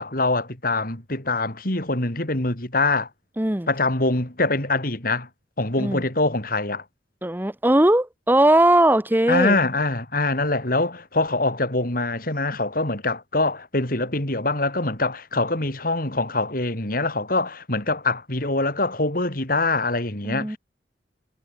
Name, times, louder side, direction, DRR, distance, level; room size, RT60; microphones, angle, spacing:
voice 1, 0.0-3.1 3.7-5.3 5.6-6.8 9.3-20.6, left 2 dB, 55° left, 4.4 m, -24 dB
voice 2, 3.4-3.7 5.8-6.0 7.2-9.6 20.2-20.6, right 1 dB, 10° right, 1.1 m, -19 dB
head